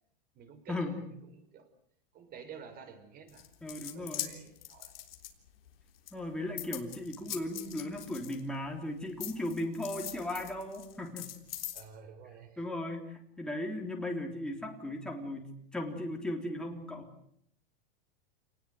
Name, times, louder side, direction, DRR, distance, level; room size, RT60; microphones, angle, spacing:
voice 1, 0.3-1.7 2.1-4.9 11.7-12.6, right 6 dB, 30° right, 8 dB, 5.3 m, -51 dB
sound 1, 3.3-5.7 6.1-8.7 9.2-11.8, left 12 dB, 80° left, 3.6 m, -42 dB
voice 2, 3.6-4.3 6.1-11.3 12.6-17.1, left 1 dB, 5° left, 1 dB, 3.6 m, -37 dB
28.5 x 19.5 x 7.9 m, 0.69 s
supercardioid pair, 140°, 29 cm